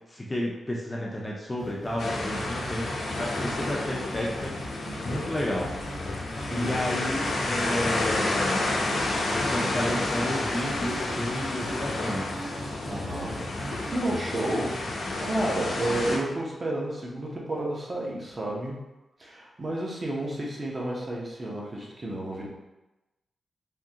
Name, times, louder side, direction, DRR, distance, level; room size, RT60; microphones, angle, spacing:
voice 1, 0.0-2.9 3.2-5.7 6.6-8.8 9.5-12.3, left 1 dB, 20° left, -3 dB, 0.5 m, -31 dB
sound 1, 1.6-13.9, right 2 dB, 90° right, 1.3 m, -41 dB
sound 2, 2.0-16.2, left 2 dB, 80° left, 0.7 m, -30 dB
voice 2, 6.4-7.1 12.9-18.8 19.2-22.5, right 1 dB, 30° right, -3 dB, 0.7 m, -32 dB
3.7 x 2.7 x 2.7 m, 1.0 s
wide cardioid pair, 140°, 0 cm